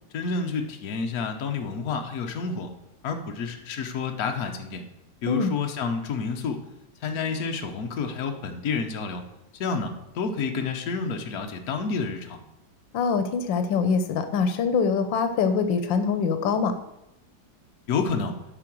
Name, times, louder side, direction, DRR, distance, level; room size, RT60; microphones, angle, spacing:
voice 1, 0.1-2.7 3.0-4.8 5.2-6.6 7.0-9.2 9.6-12.4 17.9-18.3, left 5 dB, 60° left, 4 dB, 1.4 m, -29 dB
voice 2, 12.9-16.7, left 5 dB, 90° left, 9 dB, 1.5 m, -24 dB
8.7 x 5.2 x 6.1 m, 0.88 s
omnidirectional pair, 2.0 m